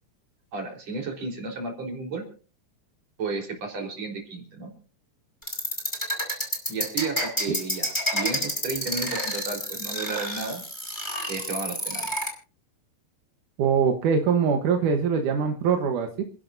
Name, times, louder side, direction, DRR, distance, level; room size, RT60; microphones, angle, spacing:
voice 1, 0.5-2.2 3.2-4.7 6.7-10.6 11.3-12.1, right 4 dB, 55° right, 2 dB, 5.3 m, -33 dB
sound 1, 5.4-12.3, equal, 5° left, 5.1 m, -28 dB
voice 2, 13.6-16.2, right 6 dB, 85° right, 4 dB, 2.8 m, -23 dB
29.5 x 11.0 x 2.7 m, 0.38 s
omnidirectional pair, 3.5 m